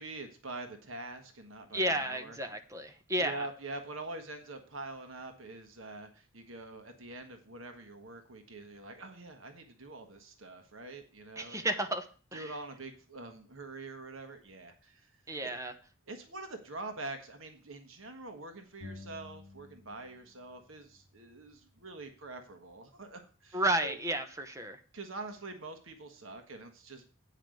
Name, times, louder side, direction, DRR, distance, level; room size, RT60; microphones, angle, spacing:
voice 1, 0.0-2.4 3.2-11.6 12.3-15.1 15.4-15.5 16.1-24.0 24.9-27.1, right 2 dB, 80° right, 7 dB, 1.4 m, -45 dB
voice 2, 1.7-3.5 11.4-12.1 12.3-12.5 15.3-15.7 23.5-24.8, right 1 dB, 15° right, 7 dB, 0.9 m, -32 dB
sound 1, 18.8-20.3 20.6-22.3, left 2 dB, 45° left, 2.9 m, -52 dB
8.9 x 5.2 x 7.7 m, 0.39 s
head